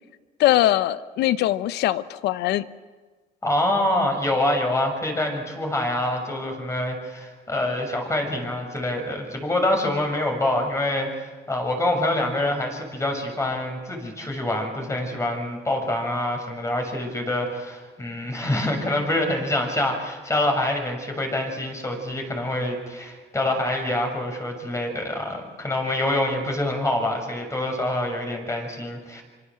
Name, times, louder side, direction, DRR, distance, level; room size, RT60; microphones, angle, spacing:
voice 1, 0.4-2.7, left 14 dB, 80° left, 15 dB, 1.0 m, -21 dB
voice 2, 3.4-29.2, left 1 dB, 15° left, 3 dB, 6.6 m, -26 dB
26.5 x 25.5 x 7.7 m, 1.4 s
cardioid pair, 110°, 17 cm